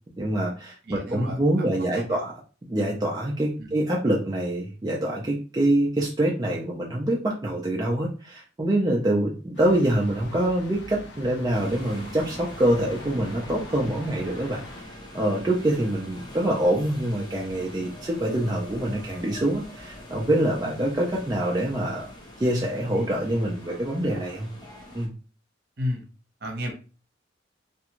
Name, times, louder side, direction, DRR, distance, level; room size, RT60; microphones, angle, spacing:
voice 1, 0.2-2.3 2.6-14.6 15.1-22.1 22.4-24.5 24.9-25.1, right 1 dB, 20° right, -2 dB, 0.4 m, -25 dB
voice 2, 0.8-1.4 1.9-2.2 3.6-3.8 25.8-26.0 26.4-26.7, left 1 dB, 55° right, 1 dB, 0.8 m, -31 dB
sound 1, 9.5-14.8, left 1 dB, 65° left, 0.7 m, -44 dB
sound 2, 11.5-25.1, left 1 dB, 20° left, 0.7 m, -43 dB
2.4 x 2.2 x 2.9 m, 0.35 s
head